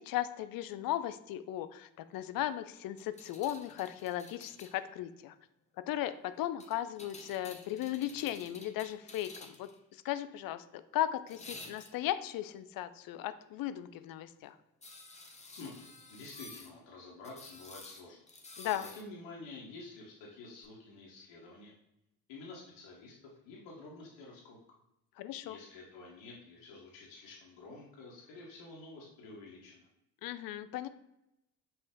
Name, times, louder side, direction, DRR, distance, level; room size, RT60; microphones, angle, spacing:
voice 1, 0.0-5.3 5.9-14.6 18.6-18.9 25.2-25.6 30.2-30.9, left 12 dB, 50° left, 12 dB, 0.4 m, -36 dB
sound 1, 3.0-4.8 6.6-9.8 11.3-12.2 14.8-16.7 17.2-19.0 20.6-20.7, left 2 dB, 15° left, 0.8 m, -51 dB
voice 2, 15.5-18.2 18.6-21.7 22.3-24.6 25.4-29.9, left 3 dB, 65° left, -3 dB, 1.2 m, -50 dB
5.6 x 2.5 x 3.6 m, 0.85 s
hypercardioid pair, 50°, 48 cm